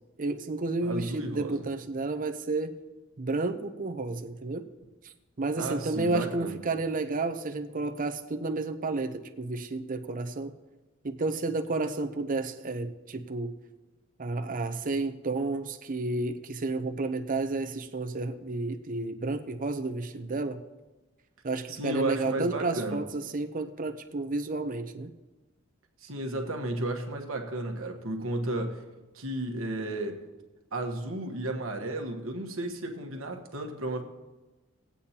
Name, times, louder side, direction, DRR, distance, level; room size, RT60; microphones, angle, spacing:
voice 1, 0.2-2.8 3.2-4.7 5.0-10.5 11.0-13.5 14.2-20.6 21.4-25.1, right 3 dB, 40° right, 0.7 m, -31 dB
voice 2, 0.8-1.6 5.6-6.6 21.7-23.0 26.0-28.8 29.1-30.2 30.7-34.0, right 1 dB, 70° right, 1.3 m, -33 dB
19.0 x 8.4 x 2.9 m
head